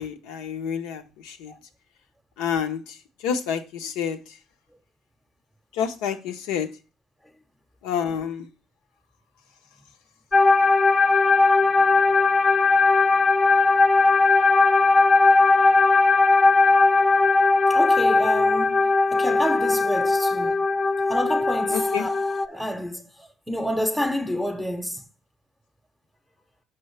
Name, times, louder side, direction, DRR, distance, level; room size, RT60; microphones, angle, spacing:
voice 1, 0.0-1.5 2.4-4.4 5.7-6.7 7.8-8.5 21.7-22.1, left 8 dB, 80° left, 0.7 m, -29 dB
sound 1, 10.3-22.5, left 3 dB, 25° left, 0.5 m, -19 dB
voice 2, 17.7-20.6 21.1-22.1 22.4-25.0, equal, ahead, 0.8 m, -29 dB
5.9 x 5.5 x 3.2 m
supercardioid pair, 70°, 0 cm